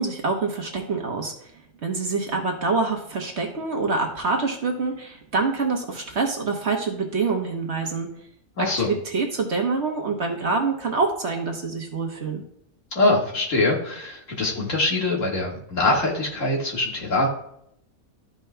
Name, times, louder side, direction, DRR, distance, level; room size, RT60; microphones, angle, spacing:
voice 1, 0.0-1.3 1.8-8.1 8.9-12.4, right 4 dB, 50° right, 2 dB, 1.2 m, -26 dB
voice 2, 8.6-8.9 13.0-17.3, left 2 dB, 60° left, -2 dB, 1.9 m, -23 dB
12.5 x 5.3 x 2.2 m, 0.73 s
omnidirectional pair, 1.5 m